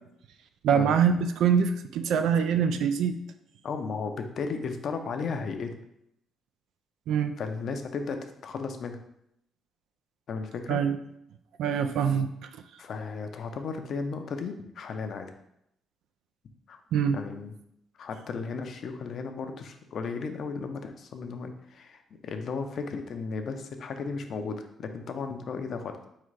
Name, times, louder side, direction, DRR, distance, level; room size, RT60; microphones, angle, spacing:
voice 1, 0.6-3.2 7.1-7.3 10.7-11.0 11.6-12.5 16.9-17.2, right 7 dB, 80° right, 8 dB, 0.3 m, -24 dB
voice 2, 3.6-5.7 7.4-9.0 10.3-10.8 12.8-15.3 16.7-16.8 17.1-17.5 18.0-26.0, left 4 dB, 60° left, 6 dB, 0.5 m, -35 dB
4.3 x 3.7 x 3.2 m, 0.77 s
cardioid pair, 90°, 0 cm